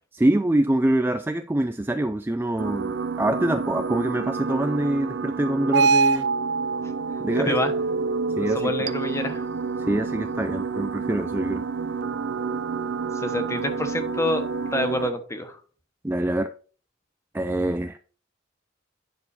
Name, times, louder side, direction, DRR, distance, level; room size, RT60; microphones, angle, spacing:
voice 1, 0.1-6.3 7.2-7.6 8.4-8.8 9.8-11.6 16.0-16.5 17.3-18.0, right 1 dB, 10° right, 8 dB, 0.3 m, -25 dB
sound 1, 2.6-15.1, right 4 dB, 65° right, 0.5 m, -27 dB
voice 2, 7.3-7.7 8.5-9.5 13.1-14.4 14.7-15.6, left 1 dB, 15° left, 7 dB, 1.1 m, -27 dB
9.5 x 5.4 x 4.2 m, 0.41 s
head